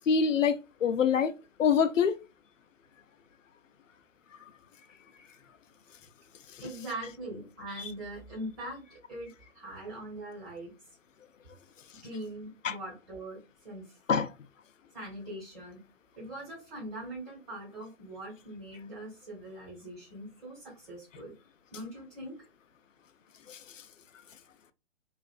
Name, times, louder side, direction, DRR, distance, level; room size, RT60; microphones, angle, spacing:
voice 1, 0.1-1.3 1.6-2.2 12.6-12.8 14.1-14.3 23.5-23.6, left 6 dB, 80° left, 0.5 m, -25 dB
voice 2, 6.6-8.8 9.1-10.7 12.0-13.9 14.9-15.8 16.2-21.3 21.7-22.5, right 1 dB, 20° right, 1.2 m, -42 dB
2.6 x 2.4 x 2.2 m
figure-of-eight pair, 130°, 37 cm